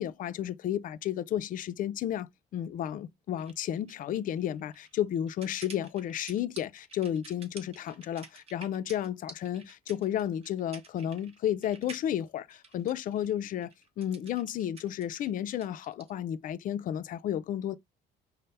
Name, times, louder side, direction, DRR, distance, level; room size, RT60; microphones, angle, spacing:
voice 1, 0.0-13.7 14.0-17.8, left 10 dB, 55° left, 0.4 m, -32 dB
sound 1, 3.4-16.1, right 4 dB, 35° right, 0.8 m, -51 dB
5.4 x 2.0 x 3.3 m
cardioid pair, 150°, 17 cm